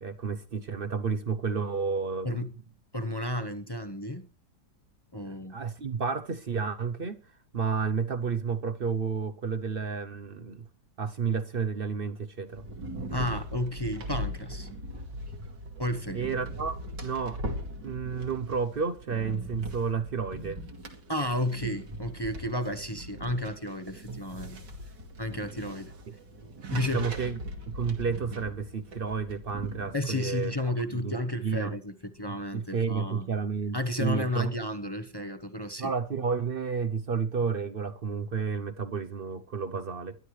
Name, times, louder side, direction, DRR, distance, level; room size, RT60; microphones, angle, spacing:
voice 1, 0.0-2.4 5.2-7.2 7.5-10.7 11.0-12.6 16.1-17.4 17.8-20.6 26.1-26.2 26.9-27.4 27.7-30.5 31.0-31.1 31.4-31.7 32.3-34.5 35.8-40.2, right 5 dB, 60° right, 0.6 m, -31 dB
voice 2, 2.9-4.3 5.1-5.6 13.1-14.7 15.8-16.3 21.1-24.6 25.2-25.9 26.7-27.1 29.9-33.3 33.7-35.9, left 1 dB, 25° left, 0.6 m, -32 dB
sound 1, 12.5-30.6, equal, 75° right, 2.9 m, -40 dB
22.0 x 11.5 x 3.2 m
omnidirectional pair, 1.9 m